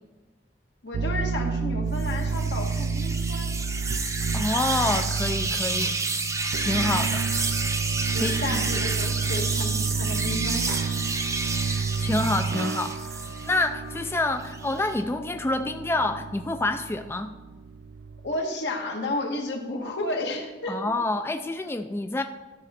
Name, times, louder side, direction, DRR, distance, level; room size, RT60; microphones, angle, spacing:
voice 1, 0.8-3.5 8.1-11.0 18.2-20.9, left 1 dB, 75° left, 1 dB, 1.6 m, -32 dB
sound 1, 0.9-18.3, right 5 dB, 70° right, 0.3 m, -30 dB
sound 2, 2.0-13.6 14.1-15.0, right 3 dB, 20° right, 0.6 m, -30 dB
Wind instrument woodwind instrument, 4.3-14.0, left 6 dB, 60° left, 2.3 m, -48 dB
voice 2, 4.3-5.9 6.6-7.3 8.2-8.8 11.7-13.2 13.5-17.3 20.7-22.2, left 2 dB, 15° left, 7 dB, 0.3 m, -27 dB
13.0 x 4.9 x 4.3 m, 1.2 s
head